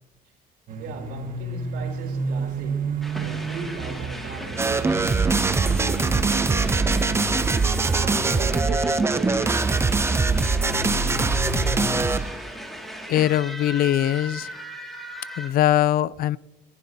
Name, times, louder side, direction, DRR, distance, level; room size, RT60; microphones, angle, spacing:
sound 1, 0.7-12.0, right 3 dB, 55° right, 1.4 m, -32 dB
voice 1, 0.8-7.3 7.9-9.5, right 5 dB, 75° right, 3.6 m, -38 dB
sound 2, 3.0-15.5, equal, ahead, 2.2 m, -37 dB
sound 3, 4.6-12.4, right 3 dB, 15° right, 0.5 m, -22 dB
voice 2, 13.1-14.5 15.4-16.4, left 12 dB, 60° left, 0.4 m, -21 dB
24.0 x 11.5 x 2.8 m
cardioid pair, 110°, 17 cm